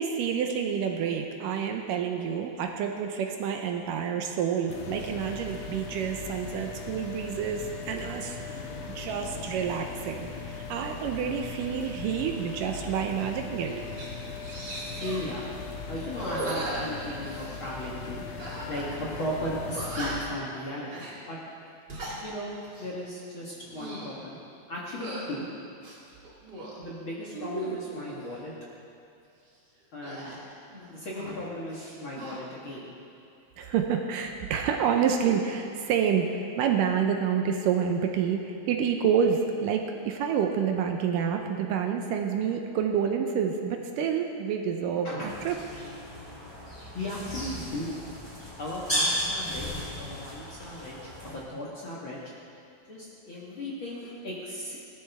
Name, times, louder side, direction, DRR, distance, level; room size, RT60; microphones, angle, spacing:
voice 1, 0.0-8.6 9.0-13.9 33.6-45.1 45.5-45.6, right 7 dB, 80° right, 3 dB, 2.1 m, -28 dB
sound 1, 4.7-20.2, left 4 dB, 70° left, 1.6 m, -39 dB
sound 2, 13.2-13.3 13.7-14.1 14.4-15.3 16.1-17.6 18.4-18.9 19.2-19.3 19.7-20.4 20.8-21.1 21.7-22.2 22.6-22.9 23.5-24.1 24.9-25.3 25.8-26.8 27.3-28.2 30.0-31.4 31.7-32.4, right 1 dB, 35° right, 2.1 m, -37 dB
voice 2, 14.9-15.5 15.9-18.2 18.7-21.4 22.2-22.5 22.8-24.4 24.7-25.5 26.8-28.5 29.9-30.4 30.9-32.9 45.0-45.3 46.9-47.9 48.3-52.3 52.9-54.8, left 1 dB, 50° left, -6 dB, 1.5 m, -36 dB
sound 3, 45.2-51.3, equal, 5° left, 3.3 m, -34 dB
17.5 x 13.0 x 3.5 m, 2.6 s
omnidirectional pair, 4.3 m